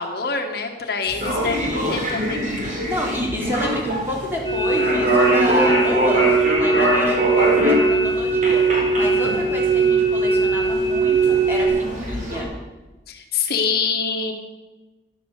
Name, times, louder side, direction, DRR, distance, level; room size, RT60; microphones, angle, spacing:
voice 1, 0.0-2.4 13.1-14.3, left 5 dB, 55° left, 3 dB, 1.3 m, -25 dB
sound 1, 1.1-12.4, equal, 45° right, 3.9 m, -24 dB
voice 2, 1.4-2.0 2.6-12.5, equal, 10° right, -3 dB, 3.3 m, -29 dB
sound 2, 4.4-11.7, right 4 dB, 35° left, 2.9 m, -20 dB
12.5 x 11.5 x 6.6 m, 1.1 s
head